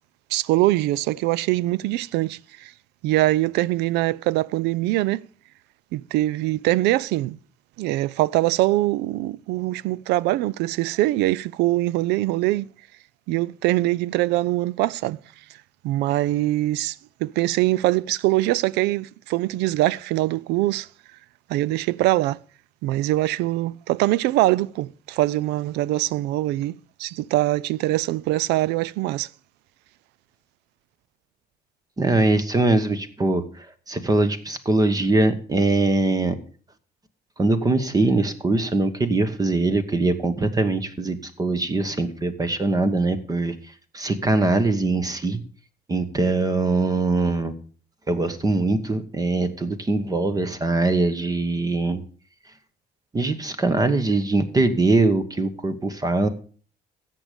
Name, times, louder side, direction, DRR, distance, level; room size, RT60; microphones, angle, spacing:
voice 1, 0.3-2.7 3.0-5.2 5.9-7.4 7.8-12.7 13.3-15.2 15.8-20.9 21.5-22.4 22.8-29.3, right 17 dB, 90° right, 0.4 m, -23 dB
voice 2, 32.0-36.3 37.4-43.6 43.9-45.4 45.9-47.5 48.1-52.0 53.1-56.3, right 2 dB, 20° right, 1.2 m, -22 dB
13.5 x 7.7 x 5.1 m
cardioid pair, 110°, 17 cm